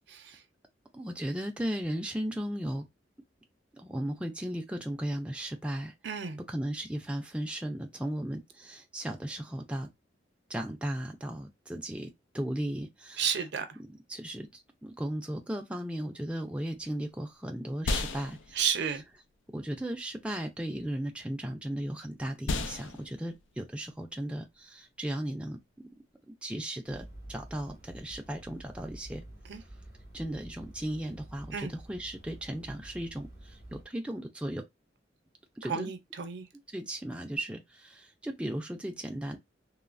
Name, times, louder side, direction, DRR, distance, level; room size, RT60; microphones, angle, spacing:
voice 1, 0.1-0.4 6.0-6.4 13.2-13.7 18.5-19.0 29.5-29.6 31.5-31.7 35.6-36.5, right 7 dB, 65° right, 0.5 m, -32 dB
voice 2, 0.9-2.8 3.7-5.9 6.5-9.9 10.5-13.2 14.1-18.6 19.5-25.6 26.3-29.2 30.1-34.6 35.6-35.9 36.7-39.4, right 1 dB, 5° right, 0.3 m, -36 dB
sound 1, 16.5-26.1, left 3 dB, 90° left, 0.4 m, -39 dB
sound 2, 26.9-33.9, right 1 dB, 55° left, 1.7 m, -49 dB
3.1 x 2.0 x 2.4 m
head